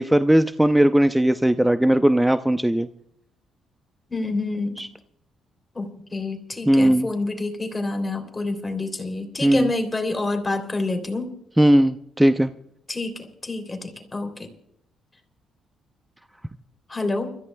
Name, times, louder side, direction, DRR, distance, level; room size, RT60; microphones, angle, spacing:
voice 1, 0.0-2.9 4.8-4.9 6.7-7.1 9.4-9.7 11.6-12.5, right 1 dB, 5° right, 10 dB, 0.5 m, -18 dB
voice 2, 4.1-4.8 5.7-11.3 12.9-14.5 16.9-17.4, left 2 dB, 20° left, 6 dB, 3.1 m, -28 dB
30.0 x 14.5 x 2.3 m, 0.72 s
cardioid pair, 90°, 0 cm